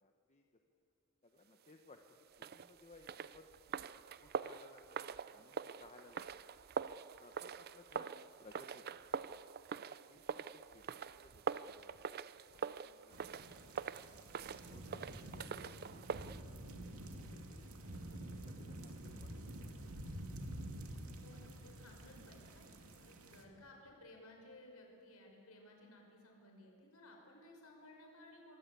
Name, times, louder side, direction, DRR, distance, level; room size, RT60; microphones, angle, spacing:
voice 1, 0.0-0.4 1.2-2.0 2.5-3.4 4.2-6.4 6.9-9.0 9.7-9.8 10.1-10.5 10.7-11.9 12.5-13.3 13.6-14.0 14.6-16.6 17.5-17.6 18.3-19.6, left 2 dB, 30° left, 3 dB, 1.2 m, -62 dB
sound 1, 2.3-16.4, right 6 dB, 45° right, 0.5 m, -44 dB
sound 2, 13.1-23.4, right 1 dB, 90° right, 2.6 m, -49 dB
voice 2, 21.2-28.6, left 1 dB, 85° left, 1 dB, 5.4 m, -58 dB
25.5 x 22.0 x 8.5 m, 2.8 s
head